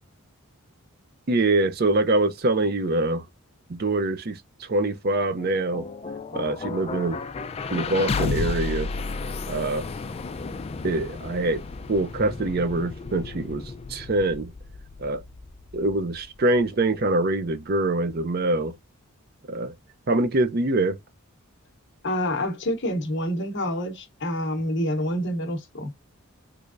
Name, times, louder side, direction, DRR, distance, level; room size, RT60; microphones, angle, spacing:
voice 1, 1.3-3.3 3.7-5.9 6.3-7.2 7.7-8.9 9.5-9.9 10.8-11.6 11.9-13.6 13.9-14.5 15.0-15.2 15.7-18.8 19.5-19.7 20.1-21.0, right 2 dB, 45° right, 0.5 m, -24 dB
sound 1, 5.4-17.2, left 4 dB, 25° left, 0.3 m, -33 dB
voice 2, 22.0-25.9, left 1 dB, 55° left, 0.8 m, -27 dB
3.4 x 3.2 x 2.4 m
head